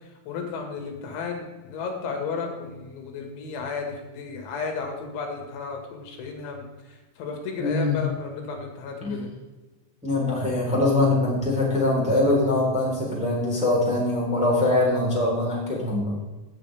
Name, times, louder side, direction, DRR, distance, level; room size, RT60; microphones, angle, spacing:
voice 1, 0.0-9.3, left 5 dB, 80° left, 2 dB, 4.2 m, -33 dB
voice 2, 7.6-8.0 9.0-9.1 10.0-16.1, left 2 dB, ahead, -5 dB, 3.2 m, -23 dB
17.5 x 7.6 x 3.5 m, 1.2 s
omnidirectional pair, 5.4 m